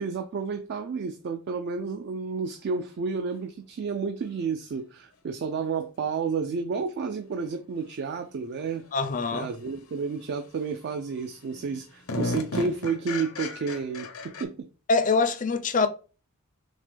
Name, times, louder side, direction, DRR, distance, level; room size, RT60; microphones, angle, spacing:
voice 1, 0.0-8.8 9.3-14.7, right 5 dB, 50° right, 0.3 m, -31 dB
sound 1, 6.8-6.9 9.7-9.8 10.2-10.7 11.1-11.2 11.5-14.4, left 2 dB, 70° left, 0.7 m, -34 dB
voice 2, 8.9-9.5 14.9-15.9, left 4 dB, 35° left, 0.4 m, -24 dB
6.2 x 2.1 x 3.3 m
head